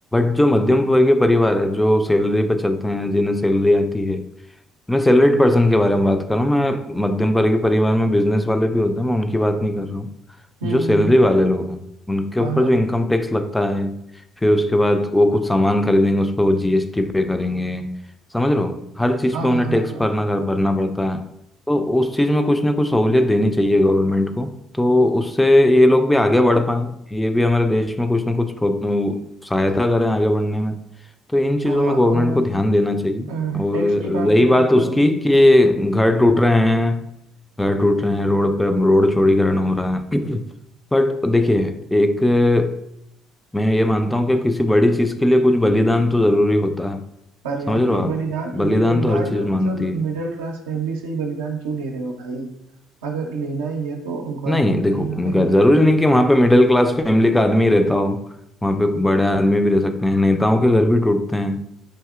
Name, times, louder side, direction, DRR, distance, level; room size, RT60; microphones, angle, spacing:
voice 1, 0.1-4.3 4.9-10.1 10.6-11.8 12.1-14.0 14.4-17.9 18.3-21.3 21.7-30.8 31.3-37.1 37.6-40.4 40.9-42.8 43.5-47.0 47.7-48.1 48.5-50.0 54.5-58.3 58.6-61.6, left 1 dB, 10° left, 0.4 m, -18 dB
voice 2, 10.6-11.1 12.4-12.8 19.3-20.1 31.6-32.6 33.3-35.2 47.4-52.5 53.0-55.5, right 4 dB, 80° right, 0.5 m, -28 dB
5.5 x 2.7 x 2.4 m
hypercardioid pair, 60°, 0 cm